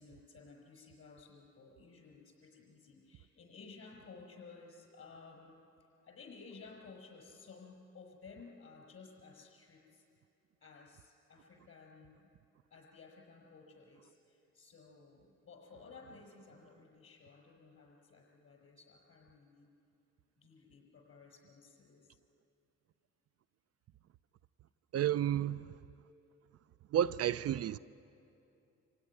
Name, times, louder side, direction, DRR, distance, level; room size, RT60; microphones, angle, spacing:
voice 1, 0.0-5.6 6.0-10.1 10.6-12.3 12.7-19.7 20.4-22.2, left 4 dB, 45° left, 6.0 m, -56 dB
voice 2, 24.9-25.7 26.9-27.8, right 11 dB, 55° right, 0.5 m, -31 dB
26.5 x 16.5 x 9.8 m
cardioid pair, 90°, 30 cm